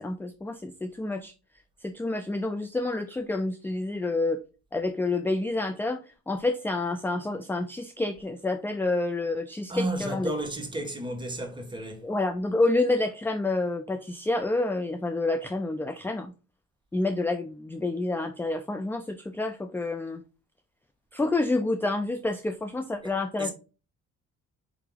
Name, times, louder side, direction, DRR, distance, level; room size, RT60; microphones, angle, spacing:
voice 1, 0.0-1.3 1.8-4.4 4.7-6.0 6.3-10.3 12.0-16.3 16.9-20.2 21.1-23.5, left 2 dB, 5° left, 0.3 m, -28 dB
voice 2, 9.7-12.0 23.4-23.5, right 1 dB, 15° right, 1.3 m, -32 dB
4.6 x 2.8 x 3.8 m
cardioid pair, 90°, 30 cm